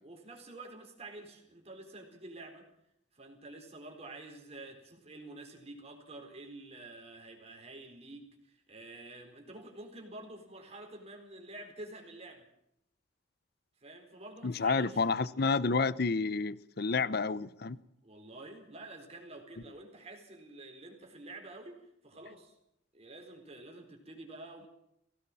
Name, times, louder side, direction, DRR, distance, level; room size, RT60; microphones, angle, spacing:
voice 1, 0.0-2.7 3.1-12.5 13.8-15.0 18.0-22.6 22.9-24.7, right 2 dB, 35° right, 4.1 m, -49 dB
voice 2, 14.4-17.8, left 4 dB, 55° left, 0.7 m, -30 dB
22.0 x 17.5 x 7.4 m
head